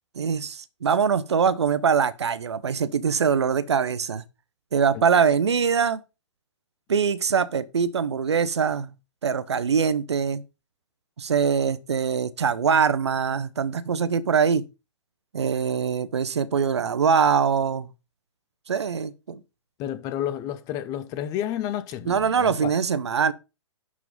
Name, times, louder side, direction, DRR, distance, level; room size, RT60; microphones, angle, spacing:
voice 1, 0.1-4.2 4.7-6.0 6.9-8.9 9.2-10.4 11.2-14.6 15.3-17.9 18.7-19.4 22.1-23.3, right 6 dB, 60° right, 1.0 m, -23 dB
voice 2, 19.8-22.7, left 11 dB, 25° left, 0.9 m, -31 dB
11.0 x 4.8 x 5.4 m
figure-of-eight pair, 120°, 16 cm